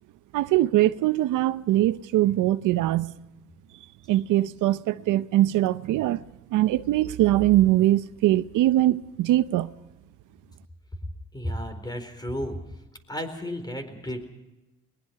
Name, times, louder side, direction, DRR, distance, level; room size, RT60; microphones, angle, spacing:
voice 1, 0.3-3.1 4.1-6.2 6.5-9.7, right 15 dB, 85° right, 0.6 m, -22 dB
voice 2, 11.3-12.6 13.1-14.2, equal, 15° left, 4.2 m, -33 dB
22.0 x 21.0 x 5.7 m
cardioid pair, 90°, 30 cm